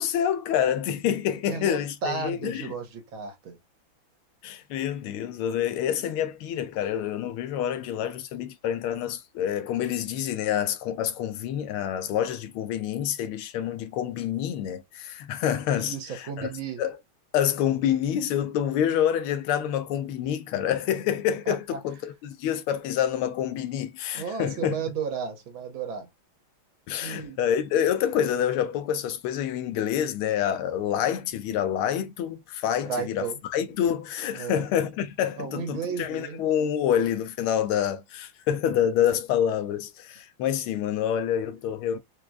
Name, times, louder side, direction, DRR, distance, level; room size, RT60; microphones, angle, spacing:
voice 1, 0.0-2.7 4.4-15.9 16.4-16.5 16.8-16.9 17.3-24.8 26.9-42.0, left 9 dB, 90° left, 1.6 m, -27 dB
voice 2, 1.5-3.6 15.7-16.8 21.5-21.8 24.1-26.1 27.0-27.4 32.9-33.4 34.4-34.7 35.4-36.4, right 6 dB, 75° right, 1.8 m, -33 dB
4.7 x 2.3 x 2.4 m
omnidirectional pair, 2.3 m